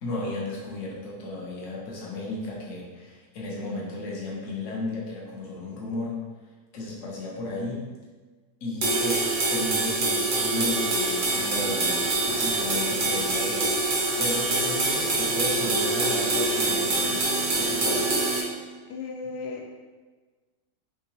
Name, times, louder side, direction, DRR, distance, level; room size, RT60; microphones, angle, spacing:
voice 1, 0.0-6.2 6.7-7.8 8.6-18.2, left 2 dB, 55° left, -4 dB, 1.0 m, -34 dB
sound 1, 8.8-18.4, right 2 dB, 75° right, 0.4 m, -25 dB
voice 2, 18.9-19.8, left 4 dB, 75° left, 1 dB, 1.1 m, -36 dB
3.6 x 2.9 x 2.9 m, 1.3 s
omnidirectional pair, 1.8 m